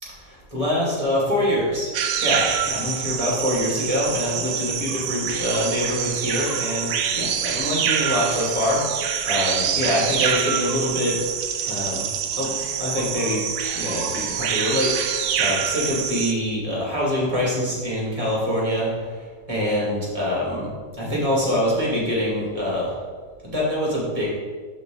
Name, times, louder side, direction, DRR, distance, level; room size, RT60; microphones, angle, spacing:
voice 1, 0.1-1.9 2.2-8.8 9.2-11.2 11.6-12.1 12.4-13.4 13.7-20.7 21.0-23.0 23.4-24.3, left 1 dB, 20° right, -5 dB, 2.4 m, -25 dB
sound 1, 1.9-16.3, right 8 dB, 70° right, 1.0 m, -26 dB
12.0 x 4.0 x 3.8 m, 1.5 s
omnidirectional pair, 1.9 m